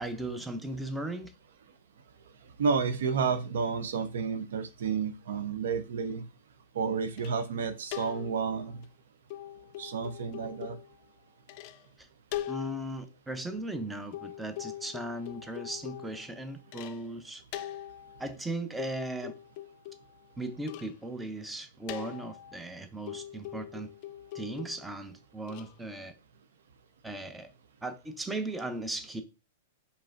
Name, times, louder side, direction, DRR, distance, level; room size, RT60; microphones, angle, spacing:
voice 1, 0.0-1.3 12.0-12.1 12.5-17.4 18.2-19.3 20.4-23.9 24.3-26.1 27.0-27.5 27.8-29.2, right 1 dB, 10° right, 0.6 m, -37 dB
voice 2, 2.6-6.2 6.7-8.9 9.8-10.8, right 5 dB, 70° right, 0.6 m, -31 dB
sound 1, 7.2-7.4 7.9-8.5 8.8-8.9 9.3-11.0 11.5-11.9 12.3-12.9 14.1-17.1 17.5-18.4 18.8-20.3 20.7-21.0 21.9-22.6 23.1-24.9 25.5-25.7, left 13 dB, 45° left, 0.4 m, -42 dB
4.8 x 3.3 x 2.5 m
hypercardioid pair, 110°, 0 cm